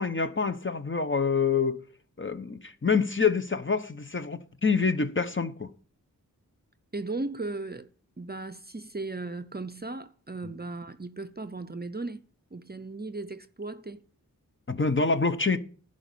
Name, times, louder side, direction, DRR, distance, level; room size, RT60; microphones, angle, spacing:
voice 1, 0.0-1.8 2.2-5.7 14.7-15.6, left 5 dB, 35° left, 1.0 m, -26 dB
voice 2, 6.9-7.9 8.2-12.2 12.5-14.0, right 3 dB, 30° right, 0.7 m, -36 dB
11.0 x 5.2 x 8.4 m
cardioid pair, 40°, 35 cm